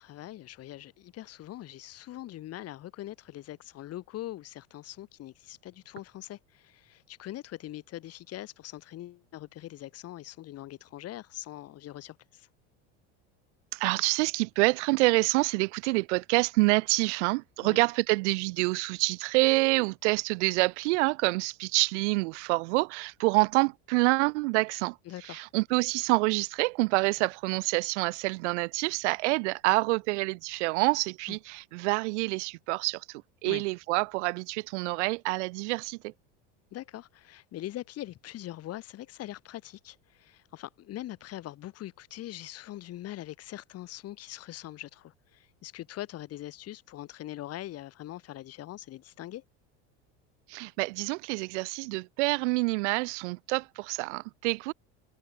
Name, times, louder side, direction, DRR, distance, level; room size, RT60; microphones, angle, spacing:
voice 1, 0.0-12.5 17.6-17.8 25.1-25.5 31.3-31.4 33.5-33.6 36.7-49.4, left 14 dB, 45° left, 7.0 m, -42 dB
voice 2, 13.7-36.1 50.5-54.7, right 25 dB, 90° right, 0.6 m, -27 dB
supercardioid pair, 140°, 34 cm